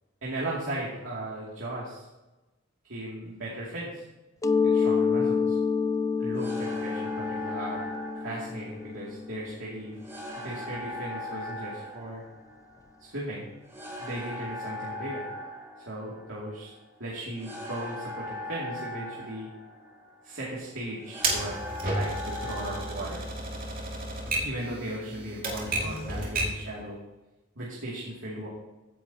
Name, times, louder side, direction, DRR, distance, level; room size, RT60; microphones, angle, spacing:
voice 1, 0.2-2.0 2.9-4.0 4.6-5.6 6.2-7.9 8.2-10.0 10.3-12.2 13.0-13.5 14.0-15.3 15.9-16.7 17.0-19.5 20.2-21.6 21.9-23.2 24.4-27.0 27.6-28.5, right 1 dB, 80° right, -6 dB, 2.6 m, -37 dB
Mallet percussion, 4.4-10.0, left 5 dB, 15° left, 0.3 m, -28 dB
sound 1, 6.3-24.1, left 1 dB, 15° right, 3.0 m, -40 dB
Typewriter, 21.2-26.7, right 2 dB, 50° right, 2.4 m, -32 dB
16.0 x 9.6 x 2.9 m, 1.0 s
head